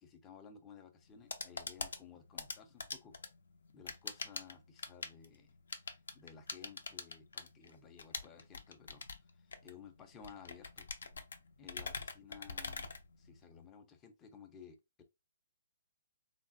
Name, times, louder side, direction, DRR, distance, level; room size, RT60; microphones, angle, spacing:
voice 1, 0.0-3.2 3.7-5.5 5.9-11.1 11.6-12.9 13.2-15.0, left 7 dB, 15° left, 0.5 m, -56 dB
sound 1, 1.0-13.7, left 4 dB, 80° left, 0.6 m, -45 dB
3.2 x 2.2 x 2.5 m
hypercardioid pair, 160°, 0 cm